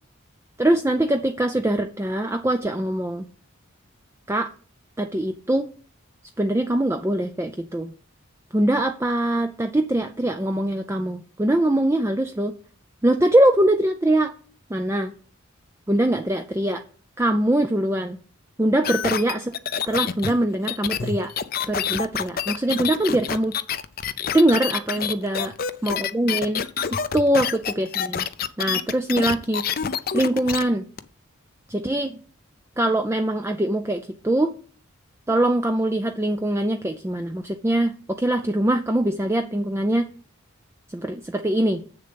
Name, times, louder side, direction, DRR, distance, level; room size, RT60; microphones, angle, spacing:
voice 1, 0.6-3.3 4.3-4.5 5.0-5.7 6.4-7.9 8.5-12.5 13.0-14.3 14.7-15.1 15.9-16.8 17.2-18.2 18.6-19.5 19.9-21.3 21.7-23.5 24.3-25.5 25.8-26.6 27.1-28.3 28.6-29.6 30.1-30.9 31.7-32.2 32.8-34.5 35.3-40.1 40.9-41.8, right 1 dB, 15° right, 6 dB, 0.4 m, -22 dB
sound 1, 18.8-30.6 31.0-31.1, left 7 dB, 45° left, 0.5 m, -27 dB
7.7 x 6.8 x 5.2 m, 0.40 s
head